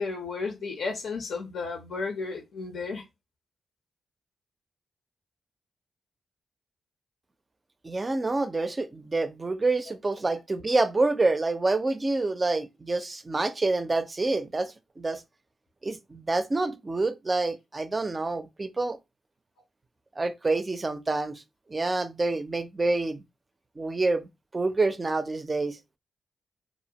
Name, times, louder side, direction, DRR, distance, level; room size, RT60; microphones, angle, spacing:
voice 1, 0.0-3.0, left 4 dB, 75° left, 0.5 m, -33 dB
voice 2, 7.8-15.2 15.8-19.0 20.2-21.4 21.7-23.2 23.8-24.3 24.5-25.8, right 3 dB, 35° right, 0.4 m, -27 dB
2.4 x 2.0 x 2.7 m
supercardioid pair, 50°, 0 cm